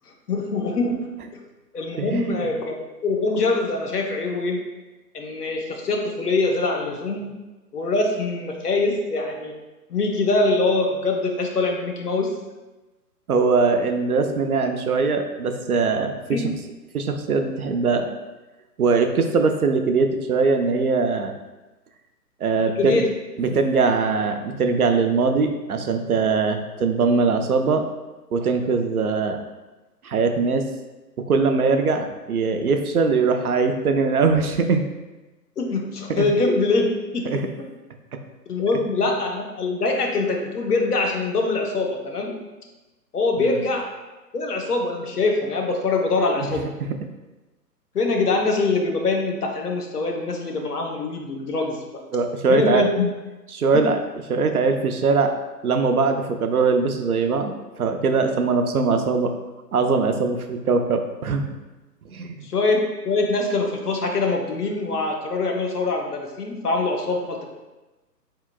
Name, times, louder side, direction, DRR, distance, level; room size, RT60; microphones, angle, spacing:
voice 1, 0.3-1.4 1.7-2.8 3.0-4.6 5.1-7.3 7.7-9.5 9.9-12.4 16.3-16.4 22.8-23.1 23.5-23.6 35.6-37.7 38.5-42.4 43.1-43.9 44.3-46.7 47.9-52.0 52.5-53.1 53.7-53.9 62.4-67.4, left 3 dB, 65° left, 2 dB, 0.8 m, -23 dB
voice 2, 2.0-2.4 13.3-16.1 16.9-18.1 18.8-21.3 22.4-23.0 23.4-27.9 28.3-29.4 30.0-30.7 31.3-34.8 36.1-36.3 37.3-37.5 43.4-43.6 46.4-46.5 46.8-46.9 52.1-52.8 53.5-54.0 54.3-55.3 55.6-59.3 59.7-61.4 62.1-62.4, right 4 dB, 65° right, 6 dB, 0.5 m, -21 dB
4.1 x 3.7 x 2.2 m, 1.1 s
figure-of-eight pair, 135°, 50 cm